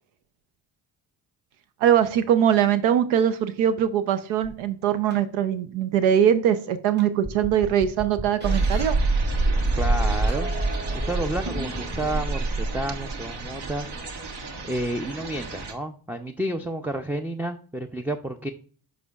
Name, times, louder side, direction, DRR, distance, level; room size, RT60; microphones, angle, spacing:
voice 1, 1.8-9.0, right 9 dB, 90° right, 12 dB, 0.6 m, -22 dB
sound 1, 4.4-4.5 5.1-5.2 6.5-6.6 7.0-9.0 9.8-12.4, right 1 dB, 20° right, 1.4 m, -35 dB
sound 2, 8.4-15.7, right 2 dB, 60° right, 1.2 m, -27 dB
voice 2, 9.7-10.5 10.9-14.3 14.6-18.5, right 1 dB, 5° right, 6 dB, 0.4 m, -31 dB
8.1 x 5.1 x 2.3 m, 0.43 s
supercardioid pair, 60°, 46 cm